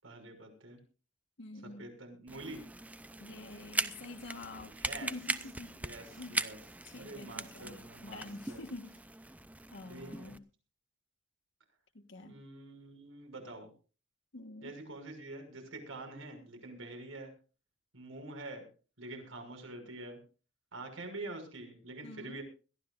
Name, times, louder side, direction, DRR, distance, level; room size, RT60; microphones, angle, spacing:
voice 1, 0.0-0.8 1.8-2.6 4.6-5.1 5.8-6.6 6.9-8.2 8.5-8.6 9.9-10.4 12.2-13.7 14.6-17.3 17.9-18.7 19.0-20.2 20.7-22.4, right 2 dB, 80° right, 5 dB, 6.2 m, -46 dB
voice 2, 1.4-1.9 3.2-5.8 6.1-6.4 6.8-9.2 9.7-10.4 11.9-12.4 14.3-14.7 22.0-22.4, left 2 dB, 60° left, 4 dB, 1.4 m, -47 dB
sound 1, 2.3-10.4, right 2 dB, 5° right, 0.6 m, -40 dB
21.5 x 14.5 x 2.5 m, 0.36 s
head